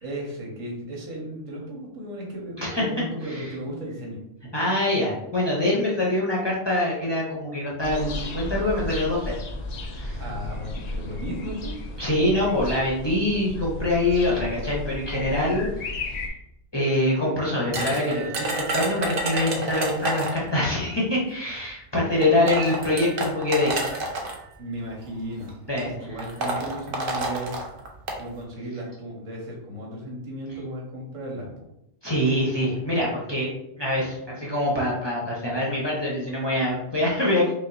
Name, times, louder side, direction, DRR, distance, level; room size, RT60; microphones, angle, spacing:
voice 1, 0.0-4.2 10.2-12.1 24.6-27.5 28.2-31.6, equal, 85° right, -2 dB, 1.5 m, -35 dB
voice 2, 4.5-9.3 9.9-10.2 12.0-16.3 16.7-23.7 25.7-25.9 32.0-33.5 33.8-37.5, left 1 dB, 25° left, -5 dB, 0.6 m, -24 dB
sound 1, 7.8-16.3, left 2 dB, 70° left, 0.4 m, -34 dB
sound 2, 17.7-20.5 21.6-21.7 22.2-24.4 25.3-25.5 25.8-25.9 26.2-28.2, right 2 dB, 50° right, 0.8 m, -29 dB
5.3 x 2.4 x 2.6 m, 0.82 s
omnidirectional pair, 1.3 m